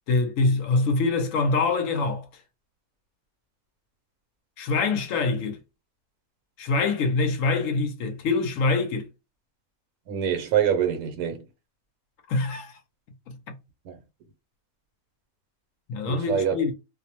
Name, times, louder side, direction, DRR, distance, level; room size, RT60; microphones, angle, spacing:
voice 1, 0.1-2.3 4.6-5.6 6.6-9.1 12.3-12.7 13.3-13.4 15.9-16.7, left 3 dB, 70° left, 0.9 m, -24 dB
voice 2, 10.1-11.5 13.8-14.0 16.1-16.6, right 8 dB, 75° right, 1.1 m, -25 dB
2.6 x 2.0 x 2.8 m
omnidirectional pair, 1.6 m